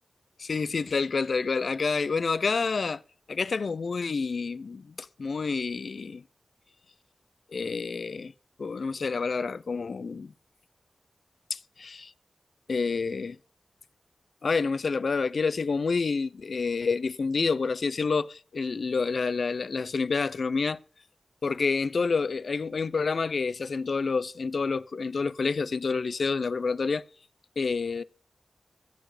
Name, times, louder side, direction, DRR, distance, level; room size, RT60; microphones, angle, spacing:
voice 1, 0.4-3.0 3.3-6.2 7.5-8.3 8.6-10.3 11.5-12.1 12.7-13.4 14.4-20.8 21.4-27.0 27.6-28.0, left 4 dB, 70° left, 0.5 m, -28 dB
14.0 x 7.8 x 4.8 m
wide cardioid pair, 85°, 0 cm